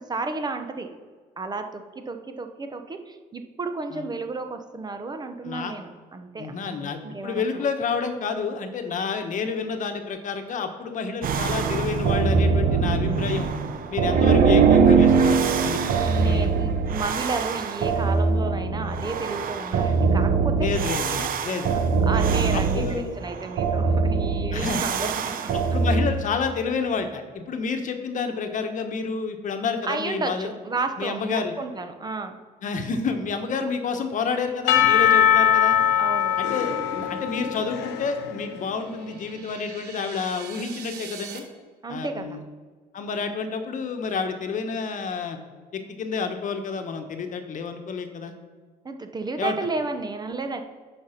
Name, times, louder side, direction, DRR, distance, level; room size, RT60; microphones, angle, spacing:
voice 1, 0.1-0.9 1.4-7.6 16.0-20.7 21.1-21.2 22.1-25.5 29.8-32.4 36.0-36.3 41.8-42.4 48.8-50.6, right 3 dB, 25° right, 6 dB, 0.8 m, -32 dB
voice 2, 6.4-13.5 13.9-15.8 16.2-16.5 20.6-21.9 22.5-23.1 24.5-24.8 25.5-30.5 31.0-31.5 32.6-35.8 36.4-41.4 41.9-42.4 42.9-45.4 45.7-48.3 49.4-49.5, left 5 dB, 50° left, 6 dB, 1.1 m, -29 dB
sound 1, 11.2-26.1, right 5 dB, 55° right, 0.8 m, -22 dB
Percussion / Church bell, 34.7-38.8, left 10 dB, 90° left, 0.9 m, -21 dB
sound 2, 38.6-41.4, right 7 dB, 75° right, 1.3 m, -42 dB
8.7 x 5.3 x 5.8 m, 1.5 s
cardioid pair, 110°, 17 cm